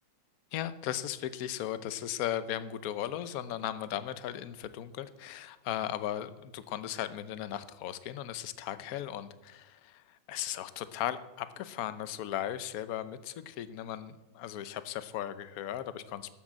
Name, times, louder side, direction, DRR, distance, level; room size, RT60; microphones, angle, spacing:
voice 1, 0.5-16.3, left 11 dB, 60° left, 13 dB, 1.0 m, -37 dB
12.5 x 7.8 x 7.4 m, 1.0 s
omnidirectional pair, 2.1 m